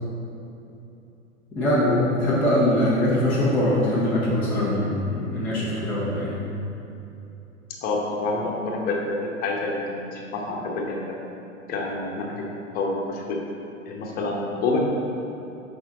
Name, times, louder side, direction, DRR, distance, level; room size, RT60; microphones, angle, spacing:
voice 1, 1.5-6.3, left 1 dB, 5° left, -10 dB, 0.4 m, -22 dB
voice 2, 7.8-11.1 11.7-12.5 12.7-13.4 13.9-14.8, left 3 dB, 25° left, -1 dB, 0.9 m, -28 dB
6.1 x 5.1 x 3.8 m, 2.9 s
figure-of-eight pair, 100°, 40 cm